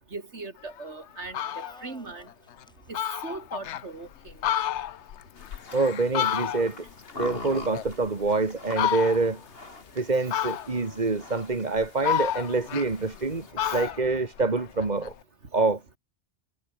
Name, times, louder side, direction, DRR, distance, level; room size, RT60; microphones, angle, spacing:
voice 1, 0.1-2.3 2.9-4.3 6.2-6.4 10.1-10.6 13.6-13.9, right 3 dB, 90° right, 3.4 m, -40 dB
Fowl, 0.7-0.8 1.2-1.8 2.3-2.4 2.6-2.7 2.9-3.8 4.3-6.9 7.2-8.3 8.7-9.4 10.3-10.9 11.5-13.3 13.6-15.1, left 11 dB, 85° left, 1.0 m, -30 dB
sound 1, 1.4-2.9, equal, 5° left, 6.9 m, -52 dB
sound 2, 5.4-13.5, left 2 dB, 60° left, 3.7 m, -44 dB
voice 2, 5.7-6.8 7.2-9.4 10.0-15.1 15.5-16.0, right 3 dB, 40° right, 2.0 m, -26 dB
omnidirectional pair, 1.1 m